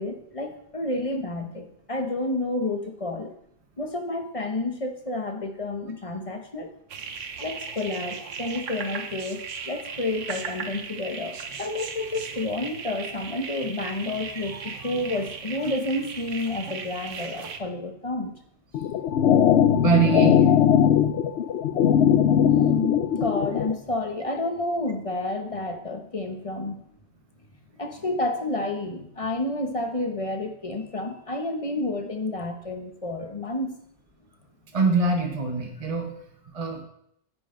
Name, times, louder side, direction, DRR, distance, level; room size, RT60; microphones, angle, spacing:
voice 1, 0.0-3.3 3.8-6.7 7.4-18.4 22.4-26.8 27.8-33.7, left 2 dB, 30° left, 5 dB, 1.1 m, -30 dB
sound 1, 6.9-17.6, right 6 dB, 85° right, 1.2 m, -37 dB
sound 2, 18.7-23.7, left 9 dB, 70° left, 0.9 m, -20 dB
voice 2, 19.7-20.4 34.7-36.1 36.5-36.8, right 5 dB, 30° right, 1 dB, 1.3 m, -23 dB
9.9 x 8.9 x 3.8 m, 0.71 s
omnidirectional pair, 1.2 m